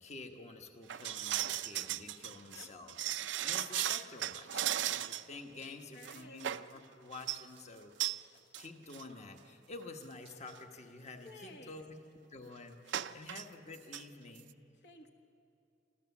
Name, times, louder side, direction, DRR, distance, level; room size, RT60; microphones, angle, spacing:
voice 1, 0.0-3.0 3.3-8.1 8.5-12.0 12.3-14.5, left 3 dB, 40° left, 4 dB, 1.3 m, -49 dB
sound 1, 0.9-5.3 5.6-5.7 6.0-6.7 7.1-7.4 8.0-8.2 8.5-8.7 8.9-9.0 9.8-9.9 10.3-10.5 12.9-13.4 13.7-14.0 14.4-14.5, right 12 dB, 75° right, 0.5 m, -36 dB
voice 2, 2.2-2.7 5.5-6.4 11.2-11.7 13.0-13.2 14.8-15.1, left 2 dB, 65° left, 3 dB, 1.4 m, -55 dB
25.5 x 14.0 x 7.3 m, 2.7 s
head